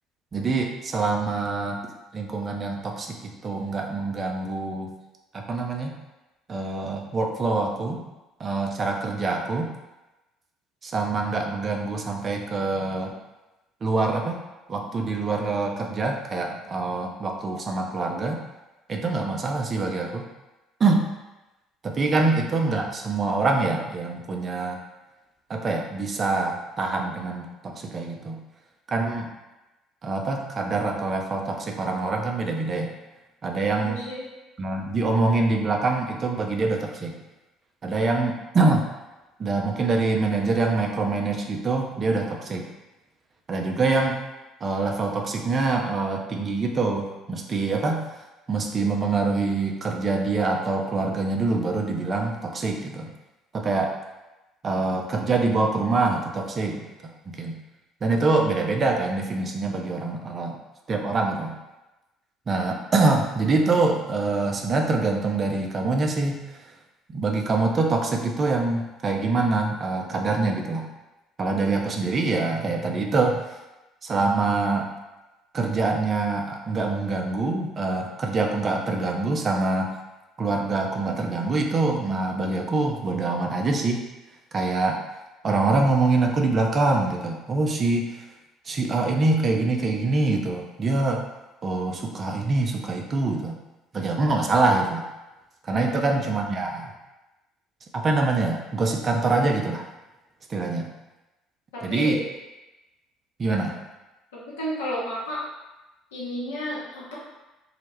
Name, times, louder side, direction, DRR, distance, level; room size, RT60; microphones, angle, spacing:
voice 1, 0.3-1.8 2.1-4.9 5.3-5.9 6.5-8.0 8.4-9.7 10.8-13.2 13.8-14.4 14.7-18.4 18.9-20.3 20.8-21.0 21.8-24.8 25.5-28.4 28.9-29.3 30.0-32.9 33.4-34.0 34.6-37.1 37.8-38.9 39.4-42.7 43.5-44.2 44.6-48.0 48.5-53.1 53.5-53.9 54.6-57.6 58.0-60.6 60.9-61.6 62.5-66.4 67.1-70.9 71.4-73.4 74.0-74.8 75.5-79.9 80.4-84.0 84.5-85.0 85.4-88.2 88.7-91.2 91.6-93.6 93.9-95.1 95.6-96.9 97.9-99.8 100.5-100.9 101.8-102.2 103.4-103.8, right 3 dB, 35° right, 2 dB, 0.3 m, -25 dB
voice 2, 33.8-34.2 95.7-96.2 101.7-102.2 104.6-105.4 106.1-107.1, equal, 70° left, -6 dB, 0.7 m, -32 dB
2.1 x 2.0 x 3.2 m, 1.0 s
figure-of-eight pair, 55°, 0 cm